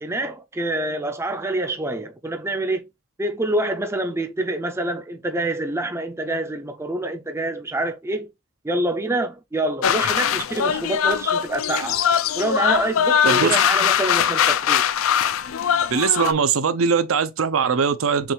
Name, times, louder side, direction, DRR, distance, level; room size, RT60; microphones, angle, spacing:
voice 1, 0.0-2.9 3.2-8.3 8.6-12.0 12.4-14.8, right 1 dB, 15° right, 0.4 m, -26 dB
sound 1, 9.8-16.3, left 8 dB, 80° left, 0.4 m, -21 dB
voice 2, 15.9-18.3, right 6 dB, 80° right, 0.5 m, -21 dB
5.9 x 2.4 x 3.1 m
head